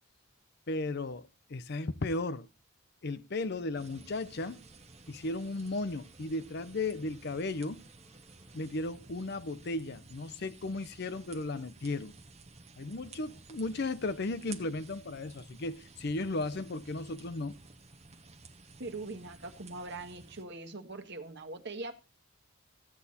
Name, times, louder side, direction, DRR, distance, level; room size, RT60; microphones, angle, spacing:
voice 1, 0.7-2.5 3.0-4.6 5.1-7.8 8.5-12.1 12.8-17.6, left 2 dB, 50° left, 0.6 m, -35 dB
sound 1, 3.4-8.7, right 1 dB, 5° right, 5.4 m, -65 dB
sound 2, 3.7-20.4, right 3 dB, 30° right, 1.1 m, -54 dB
voice 2, 18.8-22.0, right 2 dB, 55° right, 1.4 m, -42 dB
14.5 x 8.3 x 4.2 m
head